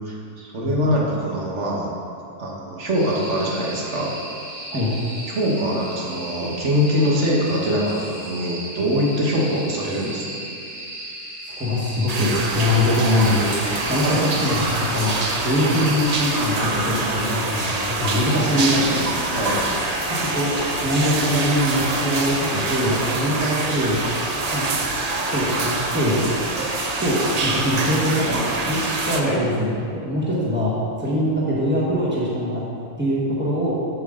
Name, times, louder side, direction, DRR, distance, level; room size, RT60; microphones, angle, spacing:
voice 1, 0.0-1.9 2.4-4.1 5.3-10.3 14.0-14.2 19.3-19.7 29.2-29.4, equal, 65° right, -3 dB, 1.6 m, -23 dB
sound 1, 2.9-16.4, right 1 dB, 25° right, 2.0 m, -35 dB
voice 2, 4.7-5.0 11.4-13.5 13.8-15.1 15.4-19.1 20.1-20.5 20.8-24.0 24.5-24.6 25.3-26.3 27.0-32.6 33.0-33.7, left 1 dB, 10° right, -6 dB, 1.4 m, -22 dB
sound 2, 12.1-29.2, right 3 dB, 45° right, 0.5 m, -26 dB
sound 3, 12.7-29.4, left 2 dB, 60° left, 1.1 m, -33 dB
7.9 x 7.1 x 3.8 m, 2.6 s
omnidirectional pair, 1.3 m